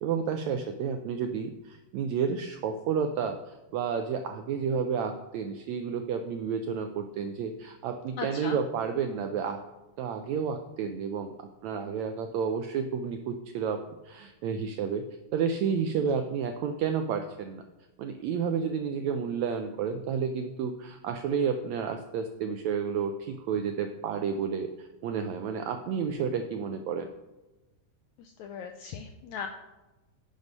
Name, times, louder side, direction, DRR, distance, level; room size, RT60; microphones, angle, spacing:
voice 1, 0.0-9.6 10.0-11.3 11.6-13.8 14.0-15.0 15.3-17.6 18.0-27.1, right 6 dB, 85° right, 6 dB, 1.6 m, -31 dB
voice 2, 8.2-8.6 28.2-29.5, left 6 dB, 80° left, 6 dB, 1.6 m, -38 dB
10.5 x 6.4 x 5.4 m, 1.1 s
omnidirectional pair, 3.9 m